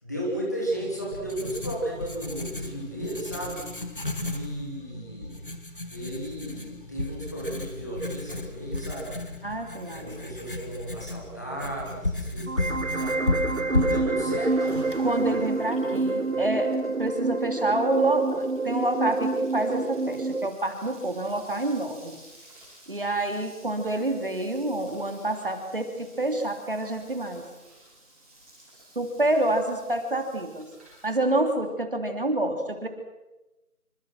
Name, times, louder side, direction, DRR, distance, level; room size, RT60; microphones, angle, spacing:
voice 1, 0.0-3.6 4.2-5.4 5.9-9.1 9.9-13.2 13.7-14.9 15.8-16.4, right 1 dB, 10° left, -3 dB, 2.9 m, -34 dB
Writing, 0.7-15.5, left 2 dB, 35° left, 2.2 m, -34 dB
voice 2, 9.4-10.2 12.7-12.8 15.0-22.2 22.9-27.4 28.9-30.7 31.0-32.9, right 2 dB, 35° right, 5 dB, 3.0 m, -28 dB
sound 1, 12.5-20.5, right 3 dB, 60° right, 1.4 m, -27 dB
Frying (food), 14.0-31.1, right 1 dB, 10° right, 7.1 m, -54 dB
27.5 x 25.5 x 6.2 m, 1.0 s
figure-of-eight pair, 175°, 44 cm